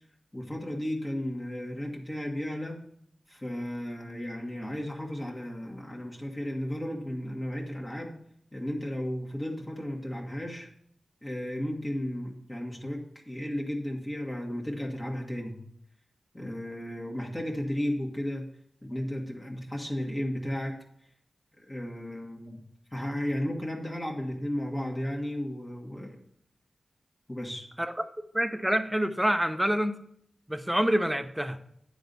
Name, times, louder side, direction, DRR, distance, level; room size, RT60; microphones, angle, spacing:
voice 1, 0.3-2.8 3.3-8.2 8.5-10.7 11.2-15.6 16.3-18.5 18.8-20.8 21.6-22.6 22.9-26.2 27.3-27.7, equal, 20° left, -1 dB, 1.5 m, -34 dB
voice 2, 28.3-29.9 30.5-31.6, equal, 5° right, 9 dB, 0.7 m, -26 dB
9.3 x 3.9 x 6.7 m, 0.69 s
cardioid pair, 65°, 0 cm